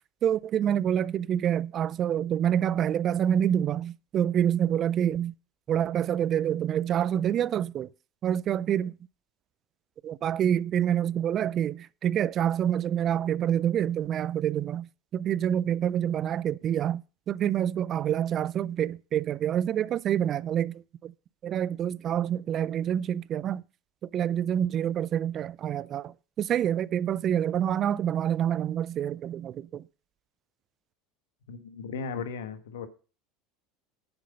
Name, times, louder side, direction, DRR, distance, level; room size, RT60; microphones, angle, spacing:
voice 1, 0.2-5.3 5.7-7.9 8.2-8.9 10.0-14.9 15.1-21.1 21.4-23.6 24.1-26.1 26.4-29.8, right 10 dB, 45° right, 0.4 m, -27 dB
voice 2, 31.5-32.9, left 5 dB, 85° left, 1.4 m, -36 dB
9.9 x 7.6 x 5.3 m
hypercardioid pair, 95°, 0 cm